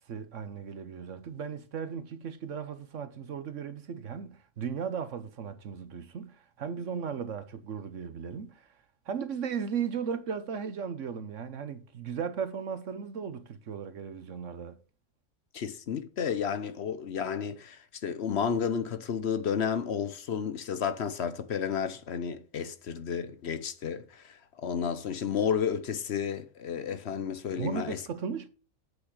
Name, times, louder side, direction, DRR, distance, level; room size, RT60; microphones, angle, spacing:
voice 1, 0.1-8.7 9.1-14.8 27.6-28.5, right 6 dB, 65° right, 1.2 m, -36 dB
voice 2, 15.5-24.0 24.6-28.0, left 7 dB, 55° left, 1.0 m, -31 dB
8.6 x 6.3 x 4.9 m
omnidirectional pair, 1.4 m